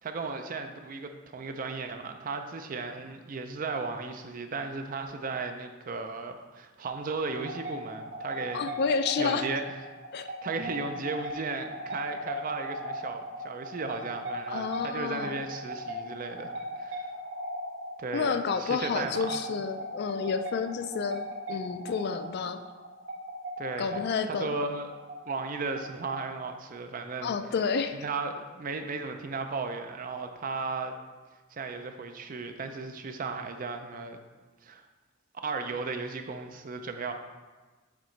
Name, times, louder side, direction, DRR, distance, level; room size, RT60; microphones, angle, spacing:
voice 1, 0.0-8.7 9.2-9.6 10.2-16.5 16.8-17.1 18.0-19.4 23.6-24.9 25.2-27.4 27.9-30.9 31.5-34.2 34.6-34.8 35.4-37.1, right 4 dB, 45° right, 6 dB, 0.4 m, -35 dB
sound 1, 7.1-26.5, equal, 65° right, 0.9 m, -39 dB
voice 2, 8.5-9.5 10.1-10.3 14.5-15.4 18.1-21.2 21.5-22.6 23.8-24.5 27.2-28.0, left 5 dB, 55° left, 9 dB, 0.3 m, -30 dB
7.3 x 3.1 x 4.4 m, 1.3 s
head